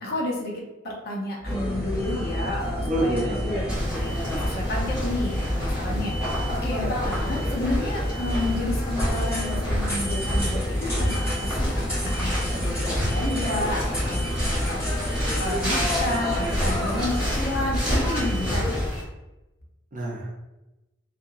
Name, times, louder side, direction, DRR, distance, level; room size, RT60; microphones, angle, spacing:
voice 1, 0.0-11.7 12.0-18.8, left 1 dB, 55° left, -2 dB, 0.8 m, -31 dB
sound 1, 1.4-18.5, left 2 dB, 35° left, 0.3 m, -39 dB
sound 2, 1.4-18.9, left 1 dB, 15° left, 1.4 m, -29 dB
voice 2, 2.9-3.8 6.8-6.9 19.9-20.4, right 1 dB, 45° right, -2 dB, 0.6 m, -28 dB
sound 3, 3.7-19.0, equal, 5° right, 1.5 m, -29 dB
2.8 x 2.6 x 2.5 m, 1.0 s
head